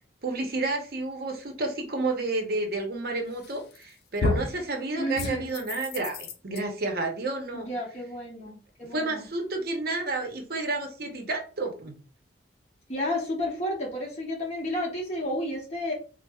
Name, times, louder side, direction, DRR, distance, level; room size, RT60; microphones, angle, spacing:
voice 1, 0.2-7.7 8.9-12.0, right 2 dB, 55° right, 3 dB, 0.7 m, -30 dB
sound 1, 3.4-3.8 4.2-4.6 5.2-6.6, left 3 dB, 55° left, 0.4 m, -30 dB
voice 2, 5.0-5.5 7.5-9.3 12.9-15.9, left 1 dB, 35° left, -3 dB, 1.0 m, -31 dB
4.1 x 2.0 x 2.3 m, 0.37 s
head